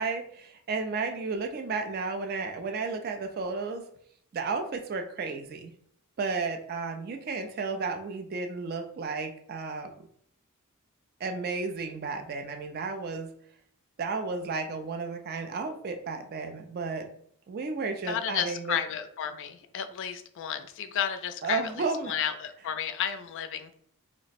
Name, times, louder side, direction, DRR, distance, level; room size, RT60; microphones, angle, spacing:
voice 1, 0.0-3.8 4.3-5.7 6.2-9.9 11.2-13.3 14.0-17.1 17.5-18.8 21.4-22.1, right 4 dB, 45° right, 5 dB, 0.3 m, -33 dB
voice 2, 18.1-23.7, left 9 dB, 55° left, 9 dB, 0.3 m, -32 dB
3.1 x 2.0 x 4.0 m, 0.63 s
head